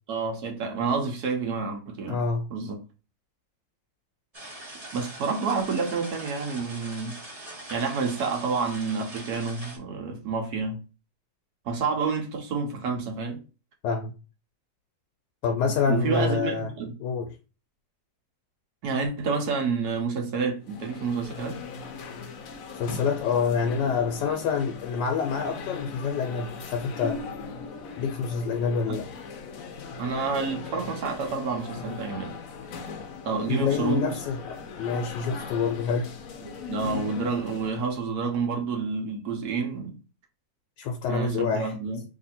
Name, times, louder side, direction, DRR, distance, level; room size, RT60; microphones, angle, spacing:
voice 1, 0.1-2.2 2.5-2.8 4.9-7.2 7.7-10.8 11.6-13.4 15.9-16.9 18.8-21.6 28.9-29.0 30.0-32.4 33.2-34.2 36.4-39.9 41.1-42.0, right 4 dB, 65° right, 1.4 m, -29 dB
voice 2, 2.1-2.5 13.8-14.1 15.4-16.7 17.0-17.3 22.8-27.2 28.0-29.0 33.5-36.1 40.8-41.7, left 5 dB, 85° left, 1.3 m, -27 dB
sound 1, 4.3-9.8, right 1 dB, 25° right, 1.1 m, -42 dB
sound 2, 20.6-37.9, left 5 dB, 65° left, 0.9 m, -39 dB
3.3 x 2.8 x 4.1 m
omnidirectional pair, 1.9 m